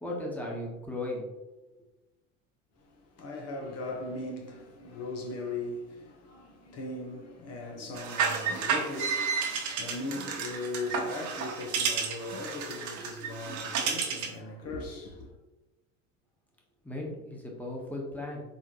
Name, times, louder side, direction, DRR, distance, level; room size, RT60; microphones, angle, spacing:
voice 1, 0.0-1.3 16.8-18.4, left 1 dB, 5° left, 1.4 m, -36 dB
voice 2, 2.8-15.3, left 2 dB, 40° left, 1.2 m, -39 dB
sound 1, 7.9-14.4, right 6 dB, 50° right, 1.1 m, -32 dB
4.2 x 3.6 x 3.1 m
hypercardioid pair, 70°, 38 cm